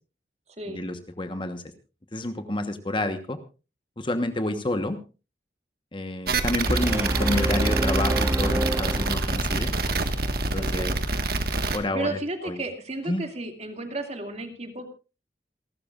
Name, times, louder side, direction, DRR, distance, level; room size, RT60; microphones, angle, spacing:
voice 1, 0.7-1.6 2.1-3.4 4.0-5.0 5.9-9.7 10.4-10.9 11.7-12.6 13.1-13.2, left 1 dB, 30° left, 8 dB, 1.2 m, -29 dB
sound 1, 6.3-11.8, right 3 dB, 60° right, 1.6 m, -26 dB
sound 2, 6.7-9.7, right 1 dB, 15° right, 1.1 m, -27 dB
voice 2, 10.5-11.0 11.7-14.9, right 2 dB, 40° right, 5 dB, 2.3 m, -33 dB
28.0 x 12.5 x 2.5 m, 0.32 s
head